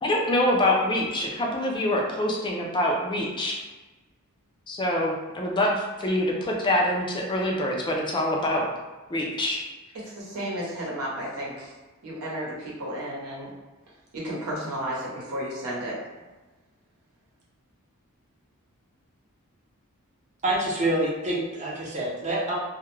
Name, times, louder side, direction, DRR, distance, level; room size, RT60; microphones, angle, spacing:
voice 1, 0.0-3.6 4.7-8.7 9.1-9.6, left 1 dB, 20° left, -1 dB, 0.3 m, -25 dB
voice 2, 9.9-11.7 12.0-13.5 14.1-16.1, right 1 dB, 85° right, -5 dB, 0.8 m, -33 dB
voice 3, 20.4-22.5, right 1 dB, 35° right, -4 dB, 0.6 m, -26 dB
2.3 x 2.1 x 3.0 m, 1.2 s
head